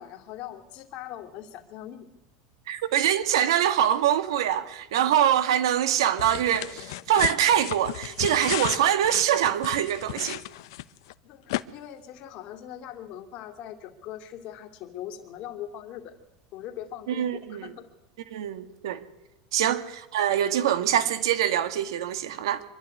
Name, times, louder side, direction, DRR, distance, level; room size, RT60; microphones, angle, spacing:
voice 1, 0.0-2.1 11.2-16.1 16.5-17.9 19.6-19.8, left 11 dB, 45° left, 2.7 m, -41 dB
voice 2, 2.7-10.4 17.1-17.7 18.3-19.0 19.5-22.6, right 10 dB, 90° right, 1.8 m, -24 dB
sound 1, 6.2-11.1 11.5-11.6, left 17 dB, 75° left, 0.8 m, -34 dB
25.0 x 11.5 x 9.6 m
supercardioid pair, 140°, 2 cm